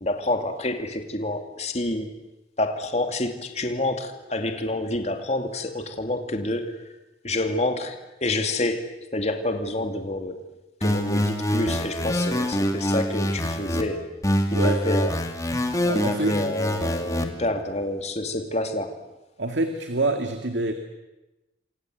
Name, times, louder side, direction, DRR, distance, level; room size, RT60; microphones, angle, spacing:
voice 1, 0.0-2.1 2.6-6.8 7.2-8.9 9.1-10.4 10.8-14.1 14.6-15.1 16.0-19.0, left 2 dB, 40° left, 5 dB, 2.7 m, -28 dB
sound 1, 10.8-13.8 14.2-17.2, equal, 20° left, 2.6 m, -25 dB
voice 2, 14.5-14.9 15.8-16.5 19.4-20.7, right 2 dB, 85° right, 6 dB, 2.1 m, -26 dB
28.5 x 26.0 x 8.0 m, 1.0 s
head